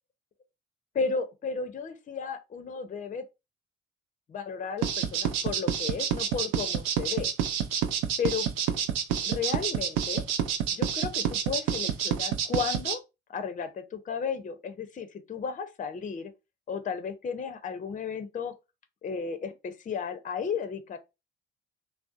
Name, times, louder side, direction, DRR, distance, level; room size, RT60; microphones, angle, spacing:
voice 1, 0.9-3.2 4.3-7.3 8.2-8.5 9.2-10.2 10.7-13.0 13.3-16.3 16.7-18.5 19.0-21.0, left 6 dB, 25° left, 0.5 m, -34 dB
sound 1, 4.8-12.9, right 8 dB, 60° right, 0.5 m, -28 dB
2.6 x 2.0 x 2.4 m
hypercardioid pair, 45°, 30 cm